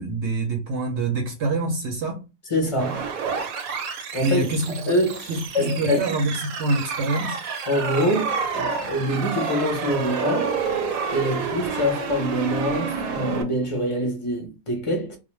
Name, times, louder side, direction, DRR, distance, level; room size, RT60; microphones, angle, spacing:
voice 1, 0.0-2.2 4.2-4.8 5.3-7.4, right 2 dB, 65° right, 0.8 m, -25 dB
voice 2, 2.5-3.1 4.1-4.5 4.9-6.0 7.7-10.6 11.1-15.2, equal, 40° left, 0.5 m, -25 dB
sound 1, 2.8-13.4, right 5 dB, 85° right, 1.0 m, -29 dB
2.4 x 2.1 x 3.0 m
omnidirectional pair, 1.4 m